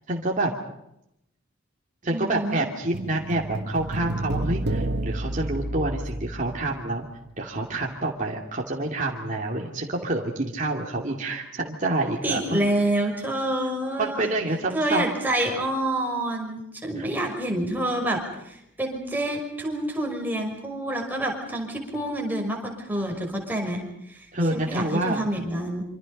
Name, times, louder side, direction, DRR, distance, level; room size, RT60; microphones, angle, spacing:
voice 1, 0.1-0.5 2.0-7.0 7.4-12.6 14.0-15.1 17.0-17.1 24.3-25.2, right 2 dB, 40° right, -1 dB, 2.7 m, -27 dB
voice 2, 2.1-2.6 12.2-14.3 14.7-18.2 18.4-25.8, right 1 dB, 10° right, 1 dB, 5.8 m, -28 dB
sound 1, 2.9-7.4 7.6-7.8, right 1 dB, 55° right, 1.5 m, -30 dB
27.5 x 26.5 x 5.5 m, 0.81 s
head